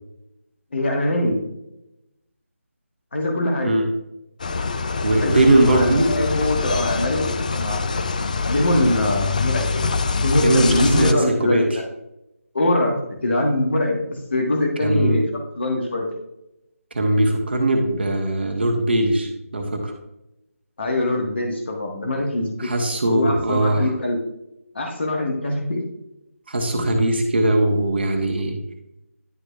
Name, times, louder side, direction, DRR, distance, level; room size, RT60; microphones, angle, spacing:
voice 1, 0.7-1.4 3.1-3.8 5.2-7.8 8.5-11.8 12.5-14.0 14.3-15.2 15.6-16.1 20.8-22.7 23.1-24.2 24.7-25.8, left 1 dB, 50° left, 1 dB, 1.5 m, -23 dB
sound 1, 4.4-11.1, left 4 dB, 30° left, 0.3 m, -24 dB
voice 2, 5.0-6.1 10.4-11.6 14.8-15.2 16.9-19.9 22.6-23.9 26.5-28.6, right 1 dB, 45° right, 3 dB, 1.1 m, -20 dB
11.0 x 4.8 x 2.4 m, 0.89 s
figure-of-eight pair, 155°, 8 cm